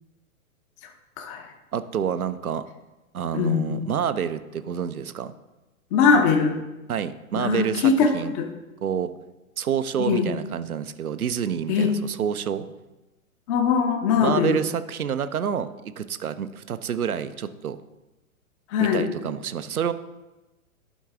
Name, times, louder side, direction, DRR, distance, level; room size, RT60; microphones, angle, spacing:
voice 1, 1.7-2.7 3.1-5.3 6.9-8.3 8.8-9.1 9.6-12.7 14.2-17.8 18.8-19.9, right 8 dB, 75° right, 12 dB, 0.6 m, -28 dB
voice 2, 3.3-3.8 5.9-6.6 7.4-8.5 10.0-10.3 11.7-11.9 13.5-14.6 18.7-19.1, left 6 dB, 20° left, 4 dB, 0.6 m, -21 dB
11.0 x 4.6 x 3.5 m, 1.0 s
figure-of-eight pair, 115°, 43 cm